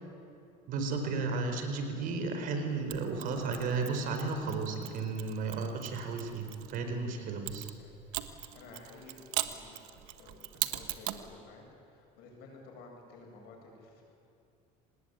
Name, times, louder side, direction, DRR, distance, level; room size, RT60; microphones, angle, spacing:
voice 1, 0.7-7.7, right 4 dB, 55° right, 5 dB, 4.2 m, -34 dB
Mechanisms, 2.9-6.8 7.5-11.3, right 16 dB, 85° right, 1.4 m, -40 dB
voice 2, 7.8-9.8 10.2-14.0, left 3 dB, 75° left, 1 dB, 7.9 m, -53 dB
25.5 x 19.5 x 9.3 m, 2.6 s
cardioid pair, 125°, 17 cm